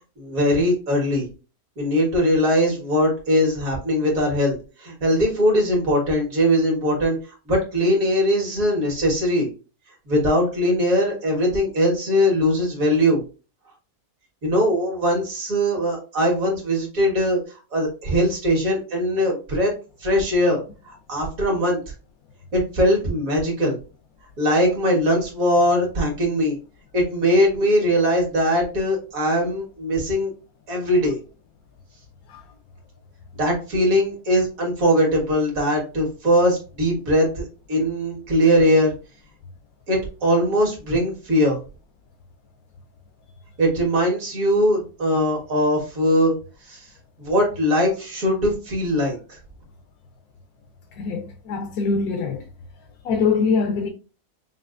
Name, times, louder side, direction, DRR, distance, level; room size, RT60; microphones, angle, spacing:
voice 1, 0.2-1.2 1.8-7.2 7.5-9.5 10.1-13.2 14.4-17.4 17.7-19.7 20.0-20.6 20.9-21.8 22.5-23.8 24.4-26.6 26.9-30.3 30.7-31.2 33.4-38.9 39.9-41.6 43.6-46.3 46.7-46.9 47.2-49.4, equal, 70° right, 1.9 m, -21 dB
voice 2, 50.9-52.4 53.0-53.9, left 5 dB, 80° left, 1.1 m, -23 dB
5.7 x 2.4 x 2.5 m
omnidirectional pair, 1.5 m